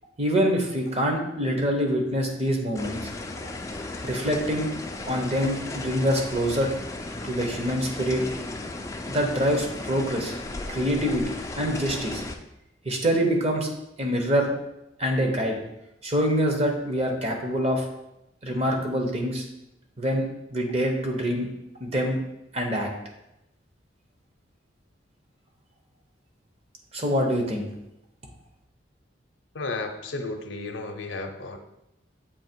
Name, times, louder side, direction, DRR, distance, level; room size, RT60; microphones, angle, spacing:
voice 1, 0.2-3.0 4.0-4.7 5.0-6.7 7.2-8.2 9.1-10.3 10.7-12.2 12.8-13.7 14.0-14.5 15.0-15.6 16.0-17.9 18.4-19.5 20.0-21.5 21.8-22.2 22.5-22.9 26.9-27.7, equal, 35° right, 2 dB, 0.9 m, -25 dB
sound 1, 2.7-12.4, left 2 dB, 15° left, 0.4 m, -35 dB
voice 2, 29.5-31.6, left 3 dB, 75° left, 5 dB, 0.6 m, -33 dB
7.2 x 2.9 x 4.5 m, 0.88 s
head